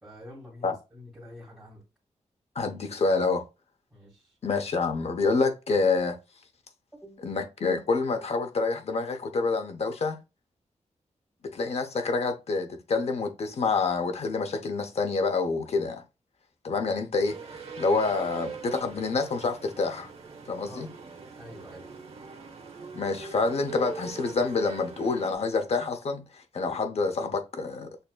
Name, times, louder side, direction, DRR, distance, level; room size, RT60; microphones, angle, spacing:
voice 1, 0.0-1.8 3.9-4.4 6.9-7.2 20.6-20.9 21.4-21.9, left 1 dB, 10° right, 1.6 m, -47 dB
voice 2, 2.6-3.4 4.4-6.2 7.2-10.2 11.5-16.0 16.6-20.1 20.5-20.9 22.9-28.0, left 4 dB, 60° left, 0.7 m, -27 dB
sound 1, 17.2-25.3, right 5 dB, 60° right, 1.1 m, -42 dB
6.6 x 2.7 x 2.2 m
wide cardioid pair, 155°, 12 cm